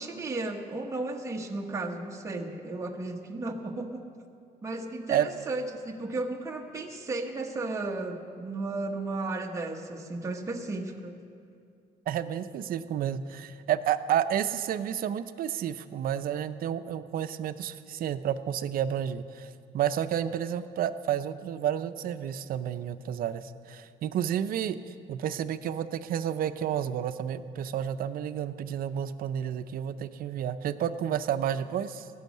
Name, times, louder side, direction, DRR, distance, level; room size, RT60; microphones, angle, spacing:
voice 1, 0.0-4.1 4.6-11.2, right 2 dB, 15° right, 1 dB, 1.1 m, -34 dB
voice 2, 12.1-32.1, right 9 dB, 60° right, 12 dB, 0.6 m, -31 dB
15.5 x 6.4 x 9.4 m, 2.5 s
cardioid pair, 110°, 17 cm